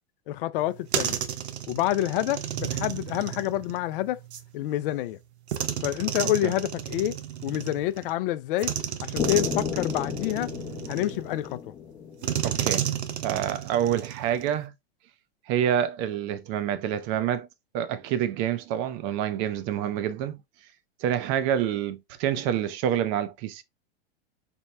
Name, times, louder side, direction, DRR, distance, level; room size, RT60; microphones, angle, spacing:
voice 1, 0.3-1.2 1.7-4.2 4.5-5.2 5.8-8.7 9.0-10.5 10.9-11.6, left 14 dB, 55° left, 0.5 m, -28 dB
sound 1, 0.6-4.5 5.5-8.1 8.6-11.5 12.2-14.6, right 10 dB, 90° right, 0.7 m, -32 dB
voice 2, 6.2-6.5 12.4-12.9 13.2-14.7 15.5-17.5 17.7-20.4 21.0-23.6, right 10 dB, 40° right, 0.6 m, -27 dB
sound 2, 9.2-13.1, left 8 dB, 20° left, 0.7 m, -33 dB
4.5 x 2.1 x 3.2 m
hypercardioid pair, 120°, 32 cm